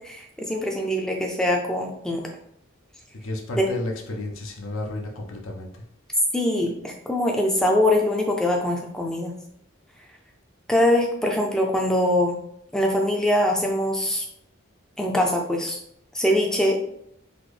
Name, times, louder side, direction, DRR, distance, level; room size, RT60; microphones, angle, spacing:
voice 1, 0.0-2.2 3.6-3.7 6.3-9.3 10.7-12.4 12.7-14.2 15.0-15.8 16.1-16.8, left 1 dB, 5° left, 1 dB, 0.4 m, -23 dB
voice 2, 3.1-5.8, left 2 dB, 80° left, 2 dB, 0.6 m, -32 dB
3.8 x 2.1 x 3.2 m, 0.72 s
head